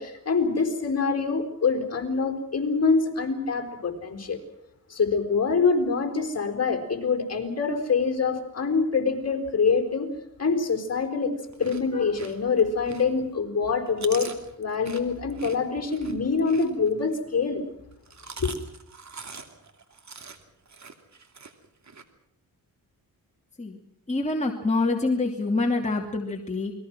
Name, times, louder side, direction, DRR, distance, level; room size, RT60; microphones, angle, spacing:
voice 1, 0.0-4.4 4.9-10.1 10.4-11.3 11.6-14.3 14.6-17.6 18.4-18.5, left 5 dB, 45° left, 5 dB, 4.4 m, -25 dB
Chewing mastication, 11.4-13.3 13.7-17.2 17.9-22.0, right 4 dB, 50° right, 2.7 m, -43 dB
voice 2, 24.1-26.7, left 3 dB, 20° left, 0 dB, 2.7 m, -26 dB
29.0 x 21.0 x 6.2 m, 0.73 s
cardioid pair, 90°, 36 cm